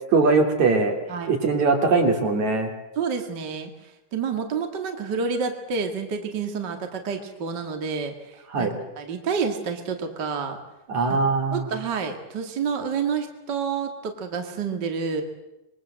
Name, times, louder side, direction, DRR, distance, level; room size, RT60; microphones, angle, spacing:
voice 1, 0.1-0.9 1.3-2.7 8.5-8.7 10.9-11.7, right 4 dB, 65° right, 3 dB, 4.5 m, -21 dB
voice 2, 3.0-10.6 11.5-15.2, right 5 dB, 35° right, 4 dB, 2.5 m, -29 dB
26.0 x 22.5 x 7.6 m, 0.95 s
omnidirectional pair, 3.6 m